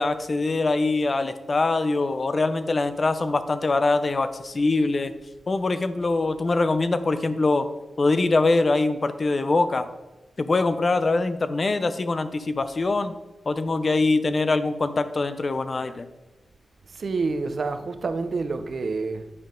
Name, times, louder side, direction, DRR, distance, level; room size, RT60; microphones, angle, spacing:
voice 1, 0.0-5.1 5.5-7.7 8.0-9.9 10.4-13.1 13.5-16.1, left 3 dB, 40° left, 0.5 m, -23 dB
voice 2, 16.9-19.3, right 4 dB, 60° right, 0.6 m, -28 dB
9.4 x 5.5 x 3.7 m
wide cardioid pair, 95°, 0 cm